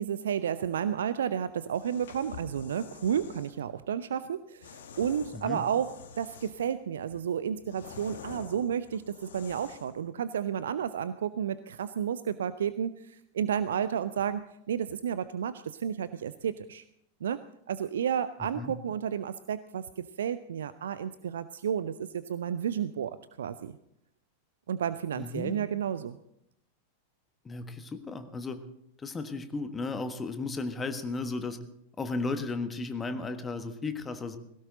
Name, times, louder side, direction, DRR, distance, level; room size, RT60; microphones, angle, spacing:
voice 1, 0.0-16.8 17.2-17.4 17.7-23.8 24.7-26.2, right 8 dB, 65° right, 15 dB, 0.4 m, -32 dB
sound 1, 1.7-3.5 4.6-6.7 7.1-10.0, left 6 dB, 60° left, 1.4 m, -48 dB
voice 2, 18.4-18.7 25.2-25.7 27.4-28.6 29.0-31.6 32.0-34.4, left 3 dB, 15° left, 9 dB, 1.4 m, -35 dB
18.0 x 16.5 x 3.8 m, 0.78 s
figure-of-eight pair, 90°, 0 cm